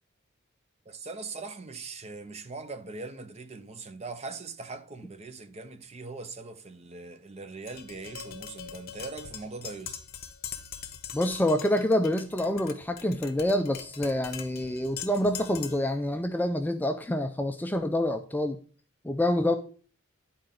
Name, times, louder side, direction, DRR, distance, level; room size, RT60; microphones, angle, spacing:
voice 1, 0.9-10.0, right 3 dB, 30° right, 0.7 m, -41 dB
Tap, 7.7-15.9, left 8 dB, 50° left, 0.7 m, -42 dB
voice 2, 11.1-18.6 19.0-19.6, left 1 dB, 10° left, 0.3 m, -27 dB
10.5 x 4.3 x 3.8 m
head